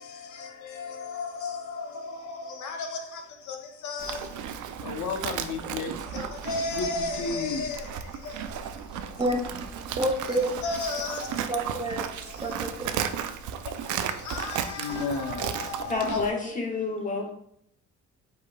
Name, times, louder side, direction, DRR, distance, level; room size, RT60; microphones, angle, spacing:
voice 1, 0.8-1.9 2.6-2.9 3.5-3.6 3.8-4.2 4.9-5.9 6.5-7.8 10.6-11.3 14.3-16.2, left 4 dB, 75° left, 0.7 m, -32 dB
Livestock farm animals working animals, 4.0-16.3, right 8 dB, 75° right, 0.5 m, -35 dB
voice 2, 9.2-10.5 11.5-12.1 12.4-13.0 14.9-15.0 16.4-16.6, right 1 dB, 15° right, 0.7 m, -29 dB
voice 3, 15.9-17.3, left 4 dB, 25° left, 1.4 m, -29 dB
4.8 x 4.3 x 2.2 m
cardioid pair, 90°, 30 cm